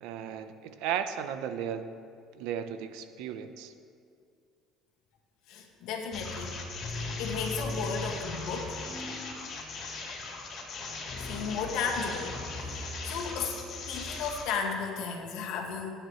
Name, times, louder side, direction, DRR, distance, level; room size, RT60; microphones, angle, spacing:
voice 1, 0.0-1.9 2.3-3.7, right 9 dB, 80° right, 9 dB, 0.8 m, -35 dB
voice 2, 5.5-6.5 6.9-8.8 11.2-13.6 13.9-15.9, left 5 dB, 75° left, 1 dB, 2.0 m, -34 dB
sound 1, 6.1-14.5, left 3 dB, 50° left, 3.7 m, -38 dB
22.5 x 9.9 x 3.3 m, 2.3 s
cardioid pair, 105°, 0 cm